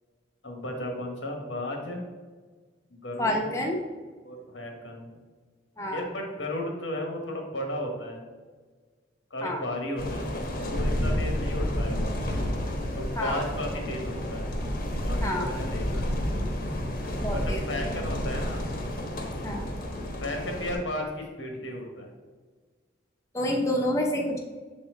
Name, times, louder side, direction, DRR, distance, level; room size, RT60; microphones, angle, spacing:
voice 1, 0.4-2.0 2.9-3.5 4.2-5.2 5.9-8.2 9.3-12.1 13.0-14.5 15.0-16.1 17.3-18.7 20.2-22.1, left 1 dB, 85° left, 1 dB, 1.6 m, -34 dB
voice 2, 3.2-3.8 5.8-6.0 9.4-9.6 13.2-13.4 15.2-15.5 17.2-17.6 19.4-19.6 23.3-24.4, left 1 dB, 15° left, 0 dB, 0.9 m, -28 dB
sound 1, 10.0-20.8, equal, 50° left, 1.1 m, -30 dB
6.9 x 4.3 x 4.0 m, 1.4 s
head